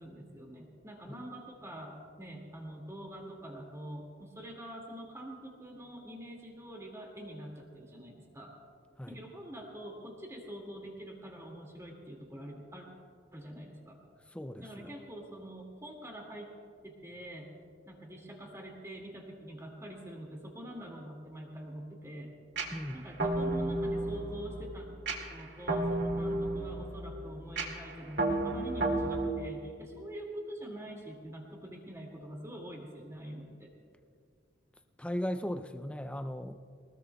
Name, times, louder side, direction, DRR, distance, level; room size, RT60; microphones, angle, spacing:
voice 1, 0.0-8.5 9.1-12.9 13.3-14.0 14.6-16.5 16.8-17.5 17.9-22.3 22.9-24.9 25.3-33.7, right 1 dB, 15° right, -1 dB, 2.2 m, -45 dB
voice 2, 14.3-14.9 22.7-23.0 35.0-36.6, equal, 5° left, 9 dB, 0.4 m, -37 dB
sound 1, 22.6-29.3, right 2 dB, 70° right, 2.1 m, -33 dB
23.0 x 20.0 x 2.3 m, 2.2 s
head